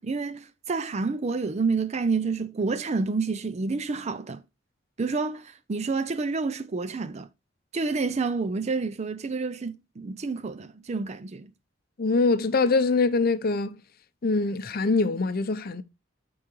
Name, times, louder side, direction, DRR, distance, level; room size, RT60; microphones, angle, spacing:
voice 1, 0.0-4.4 5.0-7.3 7.7-11.5, right 4 dB, 35° right, 0.4 m, -29 dB
voice 2, 12.0-13.8 14.2-15.8, left 3 dB, 50° left, 0.6 m, -23 dB
8.4 x 3.9 x 4.5 m
head